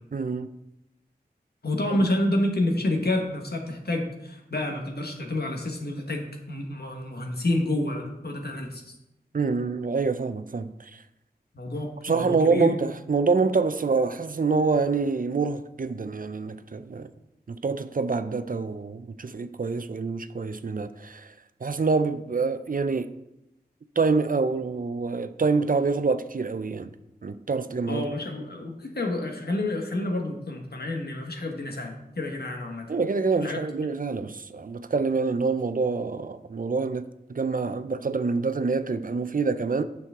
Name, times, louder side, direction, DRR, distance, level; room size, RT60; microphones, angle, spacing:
voice 1, 0.1-0.5 9.3-11.0 12.0-17.1 17.5-21.3 21.6-23.1 24.0-26.9 27.2-28.0 32.9-37.0 37.3-39.8, right 4 dB, 55° right, 0.5 m, -26 dB
voice 2, 1.6-6.2 6.5-8.8 11.5-12.7 27.9-32.9 33.4-33.6, left 1 dB, 75° left, 1.5 m, -29 dB
8.8 x 6.2 x 3.7 m
wide cardioid pair, 50°, 17 cm